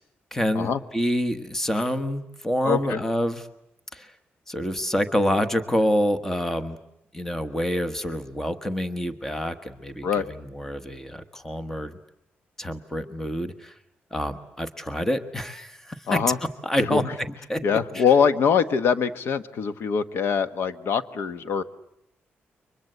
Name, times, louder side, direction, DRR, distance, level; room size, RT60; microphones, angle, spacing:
voice 1, 0.3-3.4 3.9-4.1 4.5-6.8 7.1-12.0 12.6-13.7 14.1-16.2 16.6-17.1 17.5-17.6 17.9-18.0, equal, 10° left, 10 dB, 1.3 m, -27 dB
voice 2, 2.6-3.0 10.0-10.2 16.1-16.4 16.8-17.1 17.6-21.6, left 6 dB, 70° left, 12 dB, 1.3 m, -23 dB
29.5 x 24.5 x 8.0 m, 0.81 s
wide cardioid pair, 150°, 4 cm